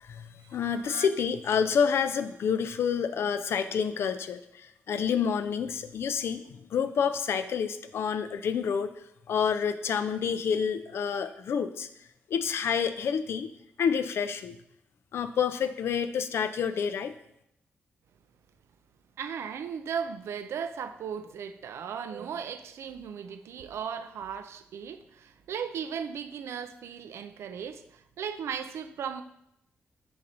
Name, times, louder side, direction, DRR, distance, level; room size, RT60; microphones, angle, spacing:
voice 1, 0.0-8.9 9.3-11.9 12.3-13.5 13.8-14.6 15.1-17.1, left 7 dB, 70° left, 0.3 m, -28 dB
voice 2, 19.2-29.2, right 7 dB, 80° right, 0.4 m, -36 dB
6.5 x 3.9 x 4.2 m
cardioid pair, 110°, 4 cm